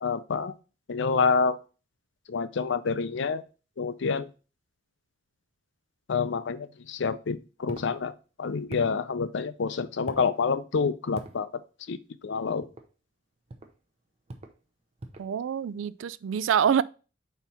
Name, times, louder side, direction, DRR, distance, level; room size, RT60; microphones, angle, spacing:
voice 1, 0.0-0.5 0.9-1.6 2.3-3.4 3.8-4.3 6.1-11.5 11.9-12.0 12.2-12.7, left 5 dB, 65° left, 0.5 m, -28 dB
sound 1, 7.7-7.9 8.7-9.0 10.1-10.4 11.2-11.4 12.6-12.9 13.5-13.8 14.3-14.6 15.0-15.3, right 2 dB, 35° right, 0.7 m, -42 dB
voice 2, 15.2-16.8, right 8 dB, 80° right, 0.3 m, -25 dB
4.4 x 4.1 x 5.5 m
head